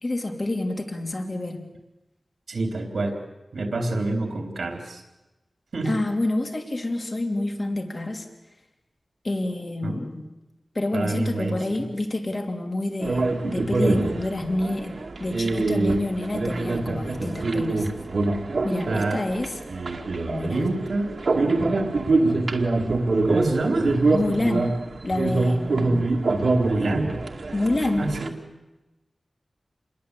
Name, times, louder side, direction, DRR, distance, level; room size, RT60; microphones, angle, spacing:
voice 1, 0.0-1.6 5.8-8.3 9.2-10.2 10.7-17.9 18.6-19.6 20.3-20.7 24.1-24.8 25.0-26.1 27.5-28.1, left 2 dB, 40° left, 3 dB, 3.1 m, -28 dB
voice 2, 2.5-3.2 3.5-5.0 5.7-5.9 9.8-10.0 10.9-11.6 18.9-19.2 20.5-21.1 23.2-24.0 26.6-27.2 28.0-28.3, right 2 dB, 90° right, 3 dB, 3.7 m, -27 dB
sound 1, 13.0-28.3, right 2 dB, 70° right, 2.3 m, -25 dB
27.5 x 21.5 x 8.4 m, 1.0 s
wide cardioid pair, 95°, 0 cm